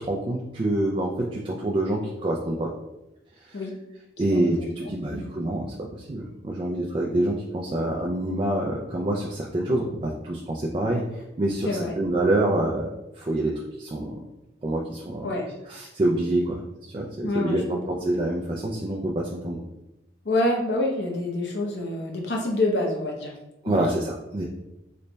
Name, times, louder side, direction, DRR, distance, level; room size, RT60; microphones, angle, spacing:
voice 1, 0.0-2.7 3.4-3.6 4.2-12.9 13.2-14.2 14.6-15.3 15.6-19.6 23.6-24.4, right 1 dB, 30° right, -2 dB, 0.3 m, -26 dB
voice 2, 11.6-11.9 15.2-15.5 17.2-17.8 20.2-23.3 23.7-23.8, left 1 dB, 80° left, 0 dB, 0.7 m, -27 dB
3.2 x 2.2 x 3.9 m, 0.95 s
head